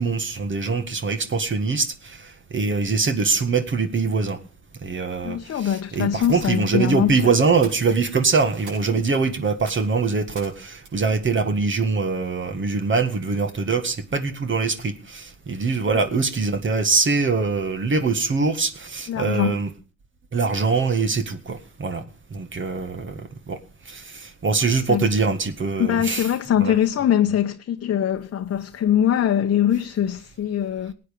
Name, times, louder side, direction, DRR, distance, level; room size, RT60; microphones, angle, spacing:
voice 1, 0.0-4.4 4.8-19.7 20.3-22.0 22.3-23.6 23.9-26.3 26.6-26.7, right 4 dB, 40° right, 1.9 m, -23 dB
voice 2, 5.2-7.2 19.1-19.6 24.9-25.1 25.8-30.9, left 10 dB, 50° left, 1.0 m, -22 dB
sound 1, 5.6-12.3, right 3 dB, 85° right, 7.4 m, -48 dB
18.5 x 8.9 x 5.3 m
cardioid pair, 90°, 30 cm